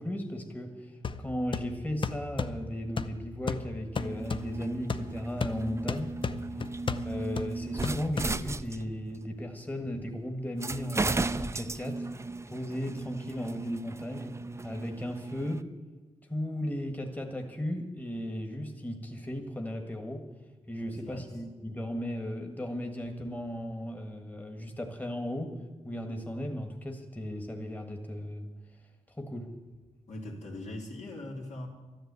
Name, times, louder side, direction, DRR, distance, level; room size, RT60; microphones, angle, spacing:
voice 1, 0.0-6.1 6.9-12.1 12.5-14.4 14.6-15.7 16.3-20.2 20.7-25.6 25.8-28.5 29.1-29.5, equal, 15° left, 4 dB, 1.5 m, -36 dB
sound 1, 1.0-8.8, left 4 dB, 45° left, 0.7 m, -36 dB
sound 2, 3.9-9.2 10.0-10.1 10.6-15.6, right 3 dB, 25° right, 0.5 m, -36 dB
voice 2, 6.4-6.8 21.0-21.3 30.1-31.7, left 1 dB, 75° left, -1 dB, 3.0 m, -41 dB
12.5 x 10.5 x 8.2 m, 1.2 s
cardioid pair, 80°, 12 cm